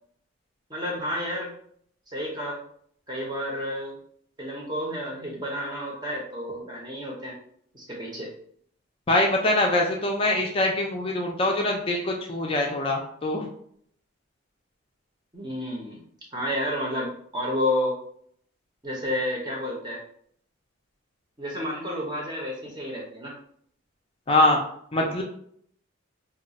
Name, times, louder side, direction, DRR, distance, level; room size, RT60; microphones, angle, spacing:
voice 1, 0.7-1.5 2.1-2.6 3.1-4.0 4.4-7.3 7.7-8.3 15.3-16.0 16.3-18.0 18.8-20.0 21.4-23.3, left 1 dB, 20° right, -3 dB, 0.6 m, -30 dB
voice 2, 9.1-13.4 24.3-24.6 24.9-25.2, left 1 dB, 25° left, 1 dB, 0.4 m, -23 dB
2.3 x 2.2 x 3.9 m, 0.64 s
head